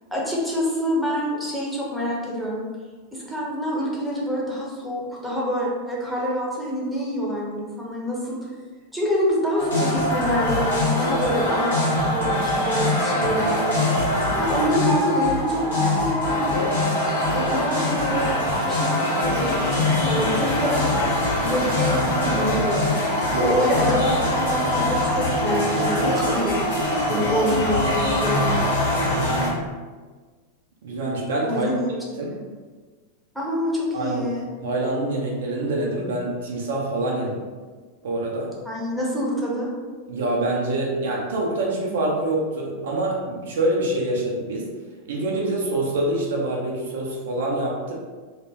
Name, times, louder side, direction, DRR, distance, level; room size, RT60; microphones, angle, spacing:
voice 1, 0.1-2.7 3.1-8.4 8.9-13.8 14.4-16.7 17.3-21.1 21.4-23.0 23.4-26.6 27.1-28.7 31.5-31.9 33.3-34.4 38.6-39.7, equal, ahead, -5 dB, 0.7 m, -26 dB
sound 1, 9.6-29.5, left 1 dB, 65° left, 0.8 m, -23 dB
voice 2, 29.1-29.6 30.8-31.7 32.2-32.3 33.9-34.3 34.6-37.4 38.0-38.5 40.1-44.6 45.1-47.9, right 2 dB, 60° right, -2 dB, 0.5 m, -25 dB
2.2 x 2.1 x 3.3 m, 1.4 s
figure-of-eight pair, 90°, 0 cm